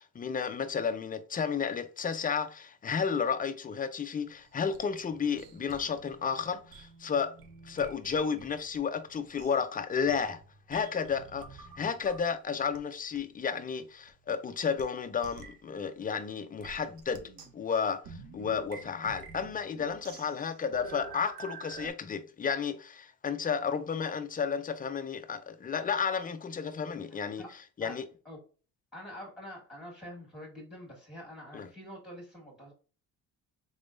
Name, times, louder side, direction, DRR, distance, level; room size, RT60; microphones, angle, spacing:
voice 1, 0.0-7.3 7.6-10.4 10.7-17.2 17.5-27.4 27.8-28.1 31.5-31.7, left 6 dB, 20° left, 0.4 m, -32 dB
sound 1, 4.3-8.8 9.1-12.3 12.7-12.8 13.1-13.2 14.1-14.2 14.8-14.9 15.2-15.6 16.6-21.9, right 5 dB, 55° right, 0.8 m, -49 dB
voice 2, 27.1-27.5 27.8-28.0 28.2-28.4 28.9-32.7, left 1 dB, ahead, 1.6 m, -46 dB
3.8 x 3.5 x 2.5 m
cardioid pair, 100°, 41 cm